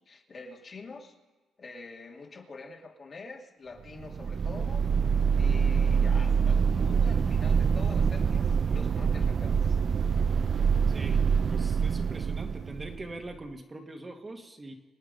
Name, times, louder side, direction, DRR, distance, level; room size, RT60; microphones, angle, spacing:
voice 1, 0.1-1.1 1.6-4.9 5.4-9.8, left 3 dB, 40° left, 1 dB, 2.4 m, -45 dB
sound 1, 4.0-13.3, right 6 dB, 45° right, 0.4 m, -25 dB
voice 2, 10.9-14.7, right 2 dB, 25° right, 3 dB, 1.7 m, -43 dB
25.0 x 9.2 x 5.3 m, 1.2 s
cardioid pair, 90°, 0 cm